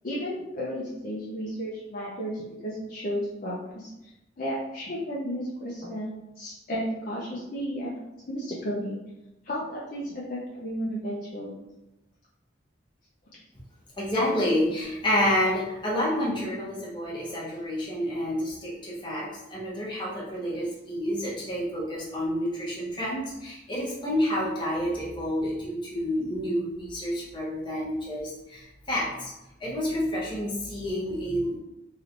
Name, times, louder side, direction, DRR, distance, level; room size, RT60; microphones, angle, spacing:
voice 1, 0.0-4.1 4.4-7.9 8.2-9.0 9.4-11.5, equal, 50° left, -6 dB, 0.5 m, -33 dB
voice 2, 14.0-29.3 29.6-31.6, equal, 25° left, -6 dB, 1.0 m, -29 dB
3.1 x 3.1 x 2.5 m, 0.94 s
head